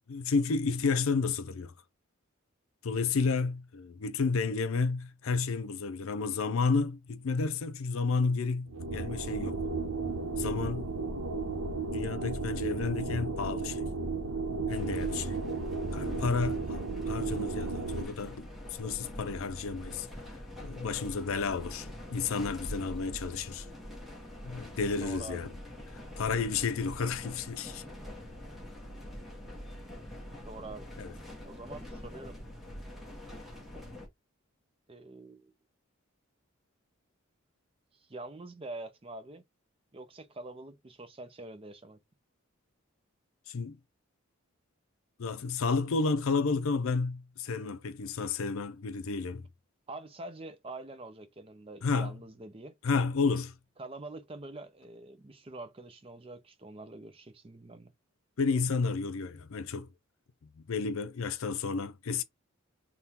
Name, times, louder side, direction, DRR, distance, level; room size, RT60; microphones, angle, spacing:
voice 1, 0.1-1.7 2.8-9.6 10.4-10.9 11.9-13.9 14.7-15.4 15.9-20.1 20.6-23.7 24.4-25.5 25.9-27.8 31.0-31.1 43.5-43.8 45.2-49.5 51.8-52.1 52.8-53.6 58.4-59.9 60.6-62.2, left 4 dB, 70° left, 0.5 m, -31 dB
sound 1, 8.7-18.0, right 3 dB, 85° right, 0.6 m, -34 dB
sound 2, 14.7-34.1, left 1 dB, ahead, 1.1 m, -44 dB
voice 2, 25.0-25.5 30.5-30.9 31.4-32.4 34.9-35.5 37.9-39.4 39.9-42.0 49.9-52.7 53.8-57.9, right 2 dB, 25° right, 0.5 m, -45 dB
3.6 x 2.3 x 4.2 m
head